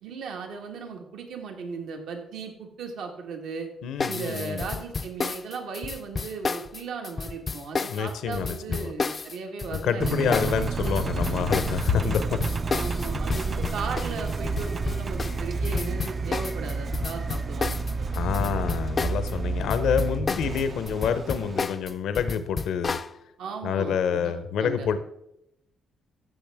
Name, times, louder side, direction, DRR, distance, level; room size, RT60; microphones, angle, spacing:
voice 1, 0.0-3.7 4.1-10.2 12.7-18.1 18.4-18.5 23.4-24.9, right 4 dB, 80° right, 3 dB, 1.5 m, -36 dB
voice 2, 3.8-4.7 7.9-8.9 9.8-12.2 18.1-23.0 23.6-25.0, left 7 dB, 75° left, 11 dB, 0.7 m, -27 dB
sound 1, 4.0-19.3 19.6-23.1, left 4 dB, 35° left, 0.4 m, -31 dB
Engine, 10.0-21.6, right 4 dB, 35° right, 0.3 m, -30 dB
14.0 x 6.3 x 3.5 m, 0.82 s
cardioid pair, 90°, 0 cm